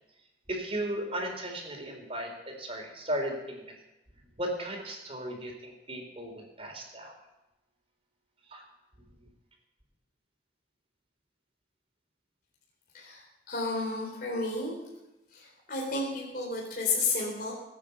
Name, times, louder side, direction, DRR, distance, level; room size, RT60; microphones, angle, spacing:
voice 1, 0.5-3.7 4.4-7.2 8.5-8.6, right 1 dB, 35° right, 2 dB, 4.0 m, -36 dB
voice 2, 12.9-14.8 15.3-17.5, left 3 dB, 55° left, -3 dB, 4.0 m, -32 dB
20.0 x 9.2 x 7.0 m, 0.95 s
head